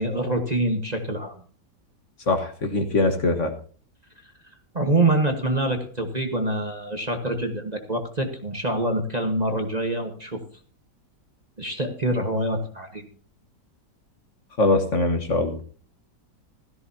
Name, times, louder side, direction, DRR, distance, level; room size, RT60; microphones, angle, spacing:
voice 1, 0.0-1.3 4.7-10.4 11.6-13.0, right 1 dB, 25° right, 4 dB, 1.4 m, -25 dB
voice 2, 2.3-3.5 14.6-15.6, left 2 dB, 45° left, 6 dB, 1.6 m, -22 dB
16.0 x 14.0 x 2.8 m, 0.42 s
omnidirectional pair, 1.9 m